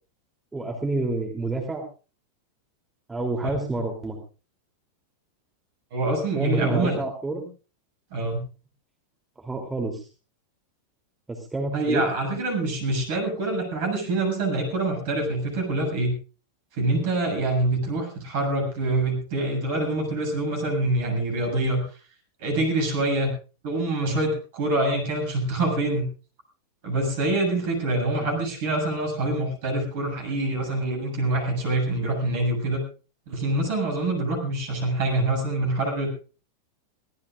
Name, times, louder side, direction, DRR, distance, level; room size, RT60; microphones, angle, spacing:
voice 1, 0.5-1.8 3.1-4.2 6.3-7.4 9.4-10.1 11.3-12.1 28.2-28.3, right 2 dB, 10° right, 2 dB, 3.1 m, -28 dB
voice 2, 5.9-7.0 8.1-8.4 11.7-16.2 16.7-21.8 22.4-23.3 23.6-26.1 26.8-32.8 33.3-36.1, right 2 dB, 50° right, 3 dB, 7.8 m, -25 dB
23.0 x 18.0 x 2.5 m, 0.35 s
figure-of-eight pair, 90°, 0 cm